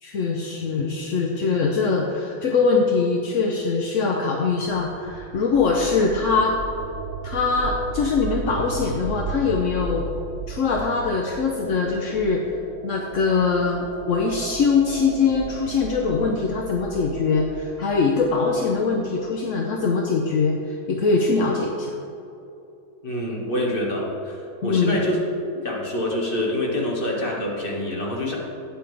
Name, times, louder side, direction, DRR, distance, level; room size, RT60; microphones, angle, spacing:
voice 1, 0.0-6.5 7.2-10.1 10.5-12.4 12.8-21.9 24.6-25.0, left 4 dB, 55° left, 0 dB, 0.9 m, -22 dB
sound 1, 4.7-19.3, right 4 dB, 70° right, 0.8 m, -35 dB
voice 2, 23.0-24.4 24.6-25.2 25.6-28.4, left 1 dB, 30° left, -3 dB, 1.8 m, -26 dB
12.5 x 9.3 x 3.4 m, 2.7 s
omnidirectional pair, 2.1 m